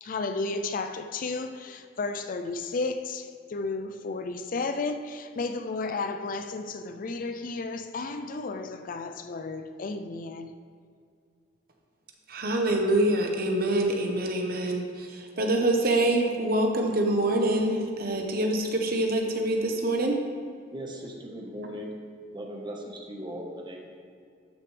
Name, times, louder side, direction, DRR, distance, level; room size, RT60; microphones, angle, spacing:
voice 1, 0.0-10.5, left 3 dB, 45° left, 0.4 m, -33 dB
voice 2, 12.3-20.2, right 1 dB, 50° right, 1.1 m, -25 dB
voice 3, 20.7-21.9 22.3-24.0, equal, 25° right, 1.3 m, -38 dB
12.5 x 6.5 x 3.3 m
head